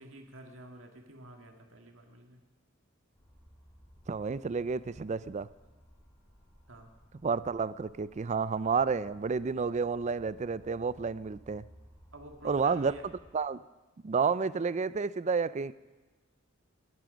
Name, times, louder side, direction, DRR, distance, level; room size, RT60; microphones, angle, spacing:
voice 1, 0.0-2.4 6.7-6.9 12.1-13.1, right 1 dB, 75° right, 4 dB, 2.0 m, -49 dB
sound 1, 3.2-13.4, equal, 25° left, 3.4 m, -59 dB
voice 2, 4.1-5.5 7.2-11.6 12.4-12.9 13.3-13.6 14.0-15.7, right 5 dB, 35° right, 17 dB, 0.4 m, -30 dB
19.0 x 11.0 x 5.2 m, 1.2 s
head